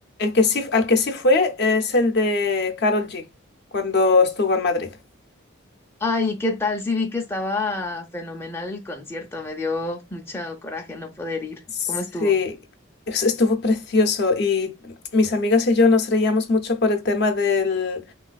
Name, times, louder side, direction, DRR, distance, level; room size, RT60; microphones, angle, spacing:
voice 1, 0.2-3.2 3.7-4.9 12.2-12.5 13.1-18.0, left 3 dB, 55° left, 0.6 m, -20 dB
voice 2, 6.0-11.6 11.9-12.3, left 3 dB, 10° left, 0.5 m, -28 dB
3.2 x 3.0 x 2.3 m
head